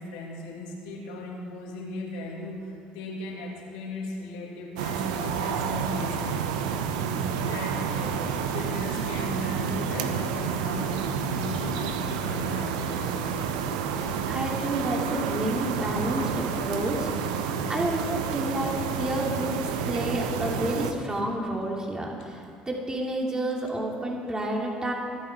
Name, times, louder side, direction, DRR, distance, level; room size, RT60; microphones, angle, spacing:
voice 1, 0.0-13.1, left 2 dB, 85° left, -2 dB, 2.8 m, -38 dB
sound 1, 4.8-20.9, right 7 dB, 90° right, 0.8 m, -29 dB
voice 2, 14.3-17.4 17.7-24.9, right 1 dB, 20° right, -1 dB, 2.8 m, -30 dB
24.5 x 9.0 x 4.7 m, 2.4 s
supercardioid pair, 70°, 4 cm